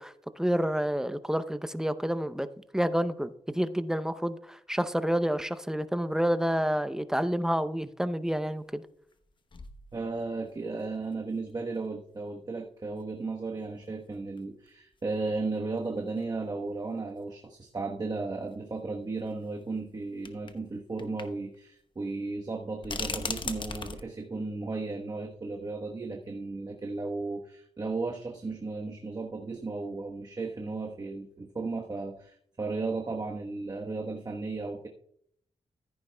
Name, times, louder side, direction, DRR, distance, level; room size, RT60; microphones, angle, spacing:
voice 1, 0.0-2.5 2.7-8.8, equal, 5° right, 13 dB, 0.6 m, -29 dB
Cards Shuffling, 8.3-8.4 9.1-9.2 9.5-10.5 11.1-11.2 13.0-13.1 14.4-14.5 14.7-14.8 15.8-15.9 16.2-16.3 17.7-17.8 19.3-19.4 20.2-20.6 21.0-21.3 21.5-21.6 22.8-24.0, left 4 dB, 40° left, 1.0 m, -37 dB
voice 2, 9.9-34.9, right 3 dB, 35° right, 1 dB, 1.1 m, -35 dB
14.5 x 9.2 x 2.2 m, 0.67 s
cardioid pair, 70°, 12 cm